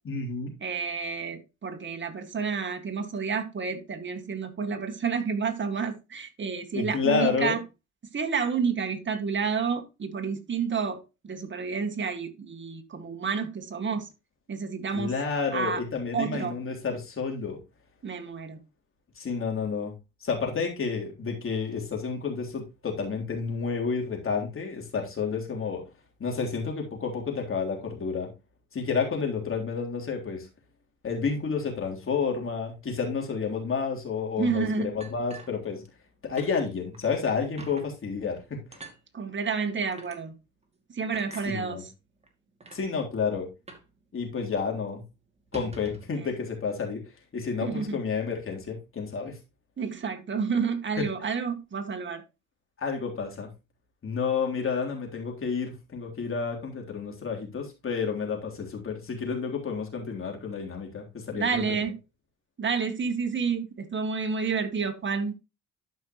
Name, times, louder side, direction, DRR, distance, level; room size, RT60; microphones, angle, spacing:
voice 1, 0.0-0.5 6.7-7.6 14.9-17.6 19.1-19.9 20.2-25.8 26.2-28.3 28.7-30.5 31.0-35.8 36.2-38.8 41.5-41.8 42.7-43.5 44.1-45.0 45.5-47.0 47.3-49.4 51.0-51.1 52.8-53.5 54.0-61.8, left 5 dB, 45° left, 3.6 m, -30 dB
voice 2, 0.6-7.6 8.1-14.1 14.5-15.1 15.5-15.8 16.1-16.6 18.0-18.6 34.4-34.9 39.1-40.3 40.9-41.9 47.6-48.0 49.8-52.2 61.4-61.9 62.6-65.3, right 5 dB, 40° right, 2.0 m, -30 dB
sound 1, 35.0-36.1 36.4-36.5 36.9-37.1 37.6-37.9 38.7-39.0 39.9-40.2 41.1-41.5 42.2-42.3 42.6-42.8 43.7-43.9 44.2-44.3 44.6-44.8 45.4-46.1, right 2 dB, 20° right, 2.4 m, -45 dB
12.5 x 5.5 x 3.1 m
cardioid pair, 90°, 30 cm